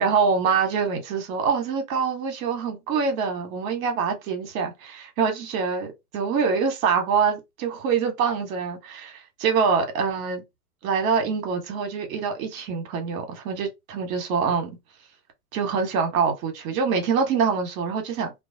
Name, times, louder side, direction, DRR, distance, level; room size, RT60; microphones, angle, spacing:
voice 1, 0.0-10.4 10.8-14.7 15.5-18.3, right 5 dB, 60° right, 1.1 m, -25 dB
2.3 x 2.2 x 2.7 m
hypercardioid pair, 105°, 45 cm